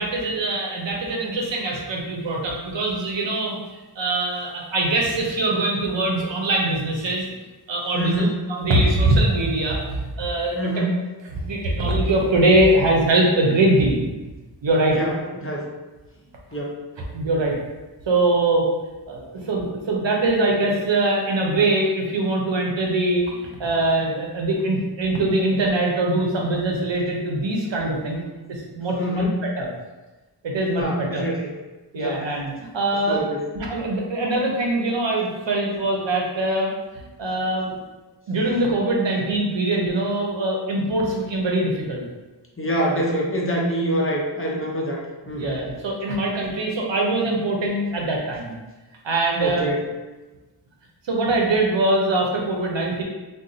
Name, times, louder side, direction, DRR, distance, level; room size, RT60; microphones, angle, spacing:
voice 1, 0.0-7.3 7.7-10.8 11.3-14.1 14.6-15.0 17.1-17.6 18.1-18.7 19.1-28.2 28.5-29.2 29.6-29.7 30.4-31.2 31.9-33.2 33.5-37.8 38.3-42.1 42.9-43.0 45.3-48.5 49.0-49.7 51.0-53.0, right 2 dB, 90° right, -1 dB, 0.7 m, -22 dB
voice 2, 7.9-8.3 10.6-10.9 14.9-15.7 16.5-16.8 29.0-29.4 30.6-31.5 31.9-32.2 33.1-33.4 42.6-45.0 45.3-45.6 49.4-49.8, right 1 dB, 30° left, -2 dB, 0.7 m, -25 dB
2.4 x 2.2 x 3.9 m, 1.2 s
wide cardioid pair, 60°, 43 cm